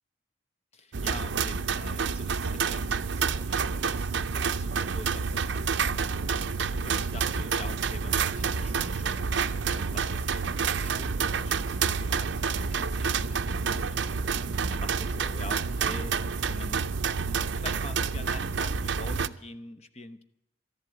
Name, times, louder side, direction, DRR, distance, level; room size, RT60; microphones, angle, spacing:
voice 1, 0.7-6.0 6.7-9.4 9.7-16.2 16.5-20.2, left 2 dB, 30° left, 9 dB, 0.9 m, -45 dB
sound 1, 0.9-19.3, right 5 dB, 60° right, 0.5 m, -29 dB
Engine / Mechanisms, 6.9-14.9 15.2-17.6 17.8-18.5, left 1 dB, 50° left, 3.8 m, -58 dB
13.5 x 11.0 x 8.1 m, 0.80 s
head